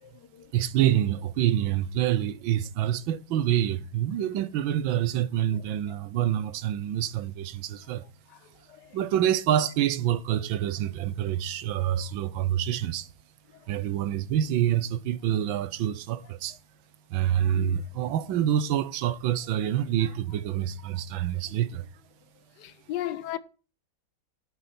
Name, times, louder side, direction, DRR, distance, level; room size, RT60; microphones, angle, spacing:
voice 1, 0.0-0.5 5.5-5.6 8.3-8.4 8.7-9.0 22.6-23.4, left 13 dB, 70° left, 1.3 m, -36 dB
voice 2, 0.5-8.1 8.9-13.1 13.7-16.6 17.1-21.9, right 11 dB, 85° right, 1.6 m, -27 dB
11.5 x 8.6 x 4.3 m
omnidirectional pair, 2.1 m